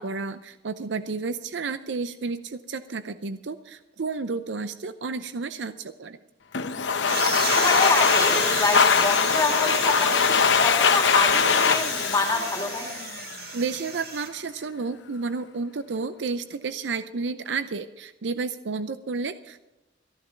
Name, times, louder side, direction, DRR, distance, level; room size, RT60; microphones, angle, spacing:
voice 1, 0.0-6.2 13.5-19.6, right 4 dB, 80° right, 11 dB, 0.6 m, -31 dB
Domestic sounds home sounds, 6.5-13.4, left 6 dB, 85° left, 0.8 m, -22 dB
sound 1, 7.1-14.3, right 6 dB, 60° right, 1.6 m, -33 dB
voice 2, 7.4-12.9, left 2 dB, 20° left, 1 dB, 2.5 m, -27 dB
14.0 x 11.0 x 5.8 m, 1.0 s
head